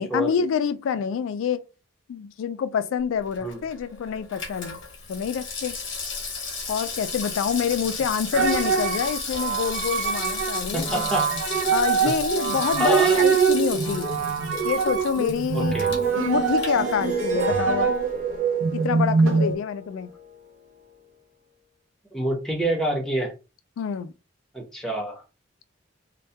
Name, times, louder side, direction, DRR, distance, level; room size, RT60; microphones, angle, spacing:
voice 1, 0.0-1.6 2.1-4.8 5.1-5.8 6.7-10.9 11.7-14.1 14.6-17.9 18.7-20.1 23.8-24.1, left 7 dB, 90° left, 0.3 m, -27 dB
Water tap faucet / Sink (filling or washing), 3.2-17.5 17.8-17.9, left 4 dB, 70° left, 0.8 m, -34 dB
sound 1, 8.3-19.6, right 6 dB, 90° right, 0.5 m, -24 dB
voice 2, 10.7-11.3 12.7-13.2 15.5-15.9 22.1-23.3 24.5-25.2, right 1 dB, ahead, 0.7 m, -27 dB
Harp, 16.0-21.0, left 6 dB, 40° right, 0.5 m, -37 dB
2.2 x 2.2 x 2.6 m
head